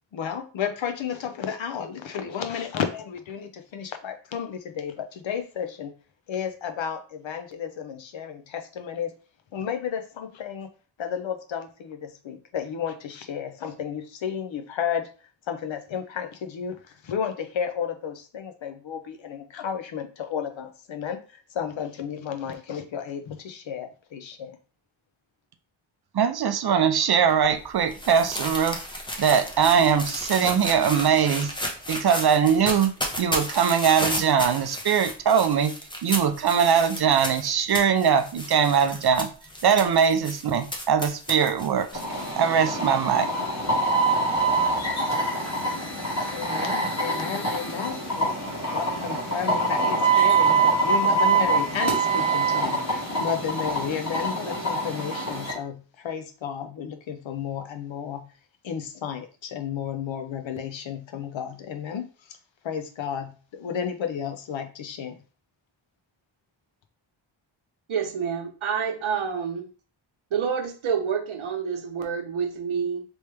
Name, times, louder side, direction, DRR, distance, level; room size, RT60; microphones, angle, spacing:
voice 1, 0.1-5.9 6.3-9.1 9.5-10.7 11.0-15.1 15.5-21.2 21.5-24.6 46.2-48.3 48.7-58.3 58.6-62.4 62.6-65.2, left 8 dB, 65° left, 8 dB, 0.7 m, -32 dB
voice 2, 26.1-28.8 29.2-31.5 31.9-35.7 36.0-39.3 39.6-41.9 42.4-43.3, right 7 dB, 50° right, 8 dB, 0.6 m, -21 dB
sound 1, 27.3-42.3, left 1 dB, 10° left, 0.7 m, -33 dB
sound 2, 41.9-55.5, right 3 dB, 30° left, 1.6 m, -24 dB
voice 3, 67.9-69.7 70.3-73.0, right 6 dB, 70° right, 3 dB, 1.0 m, -28 dB
3.2 x 3.1 x 3.3 m, 0.37 s
wide cardioid pair, 105°, 50 cm